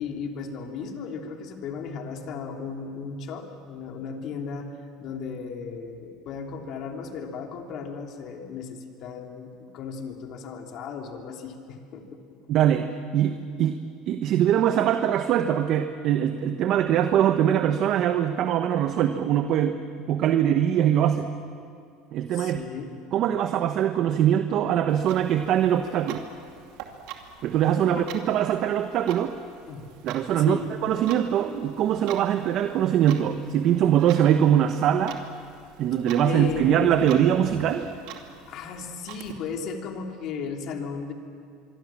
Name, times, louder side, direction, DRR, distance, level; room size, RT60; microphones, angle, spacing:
voice 1, 0.0-12.4 22.3-22.9 27.9-28.1 29.6-29.9 30.4-30.7 36.2-37.1 38.5-41.1, left 5 dB, 55° left, 2 dB, 3.2 m, -35 dB
voice 2, 12.5-13.8 14.1-19.8 20.1-21.3 22.1-22.6 23.1-26.3 27.4-29.3 30.0-35.2 35.8-37.9, right 10 dB, 55° right, 8 dB, 1.1 m, -22 dB
Clock, 24.9-39.3, right 8 dB, 75° right, 2.6 m, -45 dB
25.5 x 24.0 x 7.5 m, 2.3 s
supercardioid pair, 120°, 0 cm